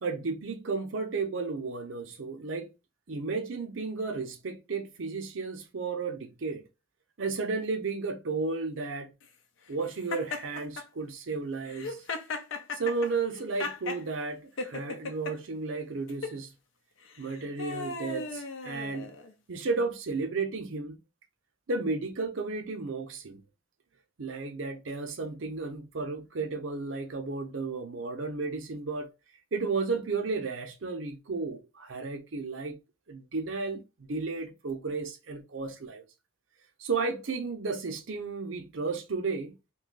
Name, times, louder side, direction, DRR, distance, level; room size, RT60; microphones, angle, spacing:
voice 1, 0.0-2.7 3.1-6.6 7.2-9.1 9.7-12.0 12.7-16.5 17.2-19.1 19.5-21.0 21.7-23.4 24.2-29.1 29.5-32.8 33.1-36.0 36.8-39.6, right 4 dB, 70° right, 0.7 m, -33 dB
Laughter, 10.1-10.8 11.6-14.0 14.6-15.3 16.1-16.4 17.1-19.3, left 4 dB, 70° left, 0.6 m, -36 dB
2.7 x 2.3 x 3.8 m
head